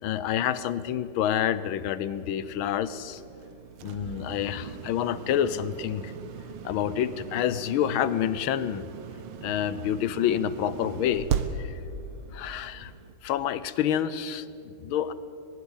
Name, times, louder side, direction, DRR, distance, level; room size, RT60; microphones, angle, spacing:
voice 1, 0.0-3.2 3.8-6.1 6.6-8.9 9.4-11.3 11.6-11.8 12.3-12.9 13.2-15.1, left 10 dB, 80° left, 15 dB, 1.6 m, -28 dB
sound 1, 2.1-13.1, right 7 dB, 85° right, 1.8 m, -38 dB
23.5 x 20.5 x 5.5 m, 2.8 s
omnidirectional pair, 2.3 m